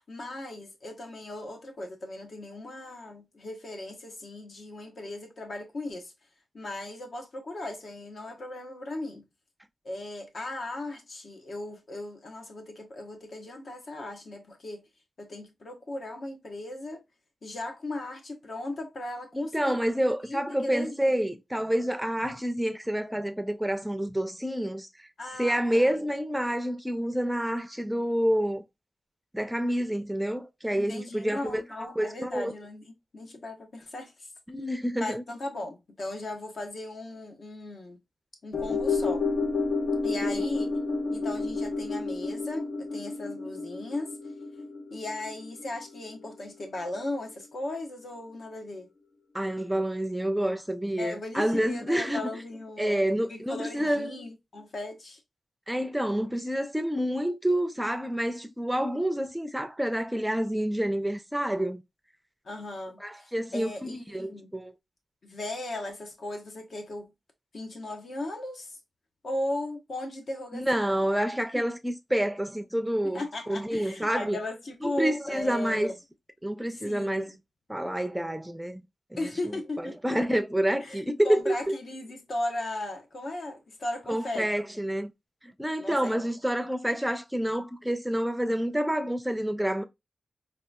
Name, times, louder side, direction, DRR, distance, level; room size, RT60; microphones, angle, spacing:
voice 1, 0.0-6.1 6.5-9.2 9.8-14.8 15.2-17.0 17.4-19.8 20.2-21.2 25.2-26.0 30.8-34.3 35.0-38.0 38.4-39.2 40.0-40.7 41.1-44.2 44.9-48.9 51.0-55.2 62.4-64.5 65.2-67.1 67.5-68.8 69.2-71.0 73.0-76.0 76.7-77.4 79.2-80.0 80.8-84.5 85.8-86.2, left 2 dB, 60° left, 1.0 m, -37 dB
voice 2, 19.3-24.9 25.4-28.6 29.3-31.6 32.0-32.5 34.5-35.2 40.2-40.3 49.3-52.2 52.8-54.1 55.7-61.8 63.0-64.7 70.5-74.4 74.8-75.9 76.4-77.3 77.7-78.8 79.1-79.2 79.8-81.7 84.1-85.1 85.6-89.8, equal, 5° right, 0.5 m, -28 dB
sound 1, 38.5-47.0 47.3-47.4, left 3 dB, 75° left, 1.1 m, -31 dB
3.9 x 2.4 x 2.2 m
wide cardioid pair, 110°, 0 cm